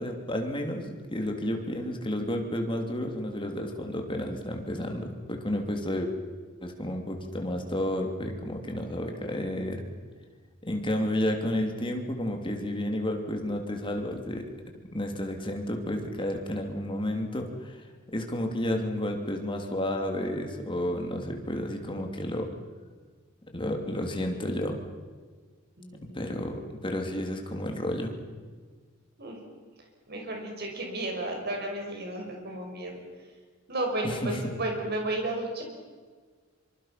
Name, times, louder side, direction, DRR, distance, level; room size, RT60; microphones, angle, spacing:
voice 1, 0.0-6.1 6.6-9.9 10.6-14.5 14.9-17.8 18.1-22.5 23.5-24.8 26.0-28.1 34.0-34.5, left 1 dB, 25° left, 3 dB, 3.0 m, -31 dB
voice 2, 25.8-26.5 29.2-29.4 30.1-33.0 33.7-35.6, right 1 dB, 55° right, 2 dB, 6.0 m, -33 dB
26.0 x 25.0 x 5.9 m, 1.5 s
head